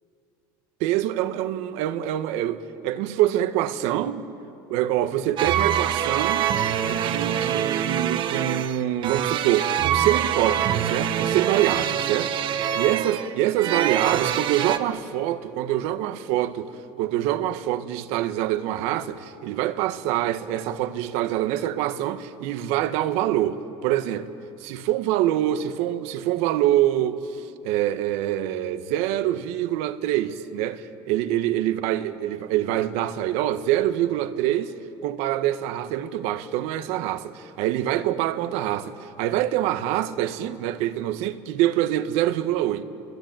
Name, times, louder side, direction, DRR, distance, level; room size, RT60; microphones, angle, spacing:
voice 1, 0.8-4.3 4.7-6.5 6.9-16.7 17.0-24.3 24.6-34.7 35.0-42.8, right 12 dB, 70° right, 1.4 m, -25 dB
sound 1, 5.4-14.8, right 9 dB, 50° right, 1.3 m, -25 dB
29.5 x 22.0 x 9.1 m
supercardioid pair, 120°, 11 cm